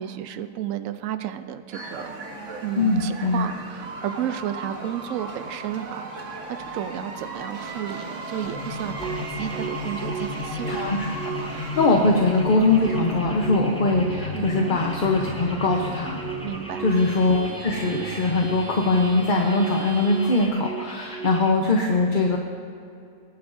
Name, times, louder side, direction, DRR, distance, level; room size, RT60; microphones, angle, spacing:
voice 1, 0.0-2.1 2.6-10.8 12.0-12.1 14.3-14.6 16.4-16.9, right 11 dB, 80° right, 11 dB, 1.0 m, -32 dB
sound 1, 1.7-20.5, right 3 dB, 65° right, 1.6 m, -37 dB
voice 2, 2.8-3.5 10.7-16.2 16.8-22.4, left 3 dB, 40° left, 1 dB, 0.9 m, -22 dB
sound 2, 8.4-16.6, left 4 dB, 65° left, 1.1 m, -35 dB
sound 3, 9.0-21.5, right 6 dB, 5° left, 0.7 m, -35 dB
21.0 x 11.5 x 2.7 m, 2.6 s
omnidirectional pair, 1.4 m